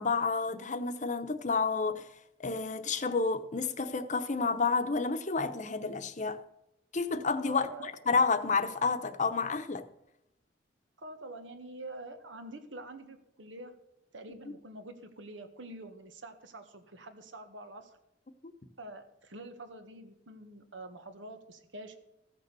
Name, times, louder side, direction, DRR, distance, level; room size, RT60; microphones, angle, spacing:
voice 1, 0.0-2.1 2.4-6.4 6.9-9.9, left 4 dB, 40° left, 0.9 m, -30 dB
voice 2, 7.4-8.0 11.0-13.8 14.1-18.0 18.8-22.0, right 2 dB, 90° right, 1.6 m, -46 dB
14.5 x 6.8 x 6.8 m
head